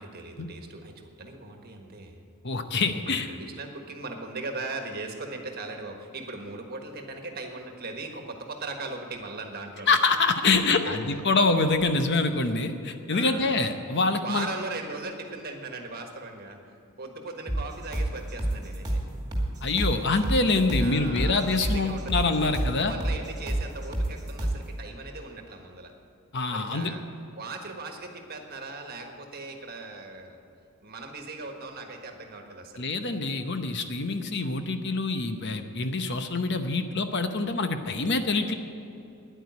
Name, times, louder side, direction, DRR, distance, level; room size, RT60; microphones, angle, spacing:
voice 1, 0.0-2.2 3.0-10.0 10.7-11.0 13.1-13.6 14.2-16.6 17.0-19.0 20.8-25.9 26.5-27.0 27.4-30.4 30.8-32.8, right 3 dB, 45° right, 4 dB, 1.5 m, -39 dB
voice 2, 2.4-3.3 9.9-14.5 19.6-22.9 26.3-26.9 32.8-38.5, left 3 dB, 50° left, 8 dB, 0.8 m, -25 dB
sound 1, 17.5-24.7, right 1 dB, 20° right, 2.3 m, -29 dB
10.0 x 9.1 x 9.3 m, 2.8 s
head